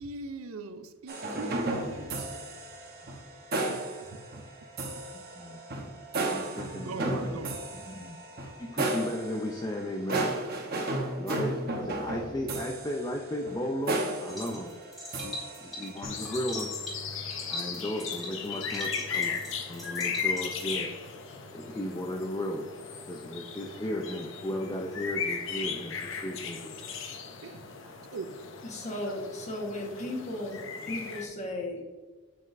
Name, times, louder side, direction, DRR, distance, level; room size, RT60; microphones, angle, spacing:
voice 1, 0.0-2.3 3.7-3.8 4.1-4.2 6.7-7.6 13.6-13.7 14.4-14.6 27.4-27.6 28.1-28.3, right 3 dB, 75° right, 10 dB, 0.5 m, -41 dB
sound 1, 1.1-16.2, right 2 dB, 45° right, 1.0 m, -34 dB
voice 2, 5.1-5.9 6.3-7.4 7.7-10.4 10.9-14.7 15.2-16.8 17.5-20.9 21.5-22.7 23.0-26.8, left 1 dB, 15° left, 0 dB, 0.4 m, -35 dB
sound 2, 14.3-20.8, left 1 dB, ahead, 1.6 m, -42 dB
sound 3, 16.0-31.3, left 6 dB, 60° left, 0.8 m, -37 dB
voice 3, 28.6-30.6 30.9-32.0, left 1 dB, 35° left, 0 dB, 1.2 m, -35 dB
7.4 x 5.9 x 2.6 m, 1.4 s
head